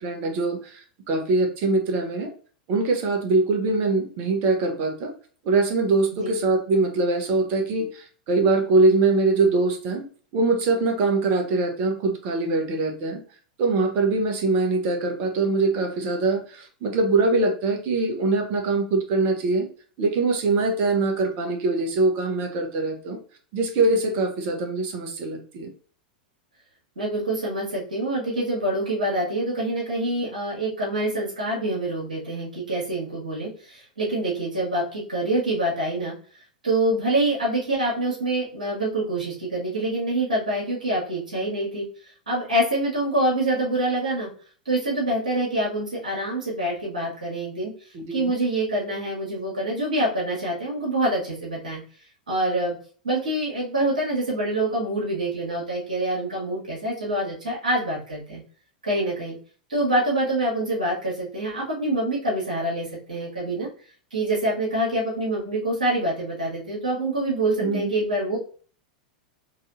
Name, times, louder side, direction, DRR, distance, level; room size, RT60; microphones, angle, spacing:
voice 1, 0.0-2.3 2.7-5.1 5.4-10.1 10.3-13.2 13.6-19.7 20.0-23.2 23.5-25.7 47.9-48.3 67.6-67.8, right 3 dB, 45° right, 3 dB, 1.1 m, -23 dB
voice 2, 27.0-36.1 36.6-41.8 42.3-44.3 44.7-47.7 48.1-51.8 52.3-52.8 53.0-58.4 58.8-59.4 59.7-63.7 64.1-68.4, right 1 dB, 75° right, -5 dB, 1.9 m, -26 dB
4.0 x 3.2 x 2.7 m, 0.42 s
figure-of-eight pair, 90°, 4 cm